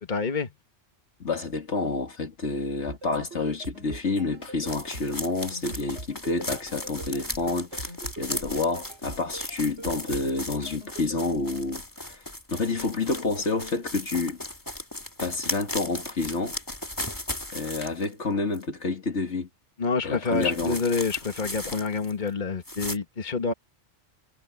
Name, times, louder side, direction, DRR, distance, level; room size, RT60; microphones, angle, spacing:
voice 1, 0.0-0.5 19.8-23.5, left 4 dB, 40° left, 1.7 m, -27 dB
voice 2, 1.2-12.2 12.5-14.4 15.2-16.6 17.5-19.5 20.0-20.8, left 3 dB, 70° left, 2.3 m, -29 dB
sound 1, 2.9-11.1, right 2 dB, 70° right, 4.4 m, -42 dB
sound 2, 4.7-18.1 18.5-18.6 20.4-22.3 22.6-23.0, left 1 dB, 15° left, 1.9 m, -36 dB
omnidirectional pair, 1.2 m